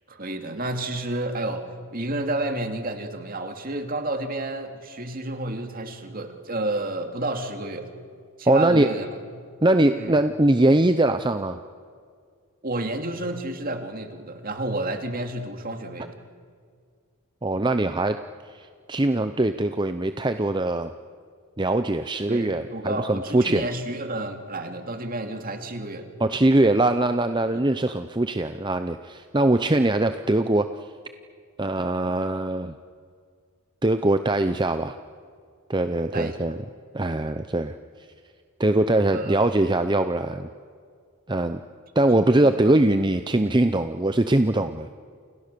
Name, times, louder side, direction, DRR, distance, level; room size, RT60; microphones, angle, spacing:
voice 1, 0.1-1.7 1.9-7.9 8.4-9.1 10.0-10.2 12.6-16.2 22.3-26.1 36.1-36.5 39.1-39.5 42.4-42.7, right 2 dB, 40° right, 6 dB, 2.5 m, -30 dB
voice 2, 8.5-8.9 9.6-11.6 17.4-18.2 18.5-20.9 21.6-23.6 26.2-30.7 31.6-32.7 33.8-35.0 35.7-36.6 36.9-37.8 38.6-40.5 41.3-41.6 41.9-44.9, right 1 dB, 20° right, 9 dB, 0.6 m, -22 dB
29.0 x 29.0 x 6.9 m, 2.1 s
head